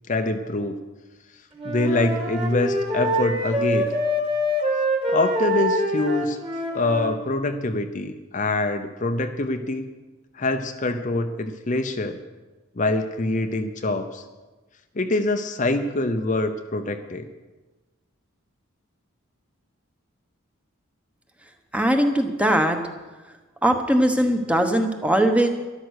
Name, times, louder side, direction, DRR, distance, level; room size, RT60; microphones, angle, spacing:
voice 1, 0.1-0.8 1.6-3.9 5.1-6.4 6.7-9.9 10.3-12.2 12.8-14.2 15.0-17.3, left 2 dB, 35° left, 7 dB, 0.6 m, -25 dB
Wind instrument woodwind instrument, 1.5-7.2, equal, 25° right, 2.0 m, -25 dB
voice 2, 21.7-22.8 23.6-25.5, right 1 dB, 5° right, 5 dB, 1.0 m, -20 dB
12.5 x 11.5 x 6.4 m, 1.2 s
head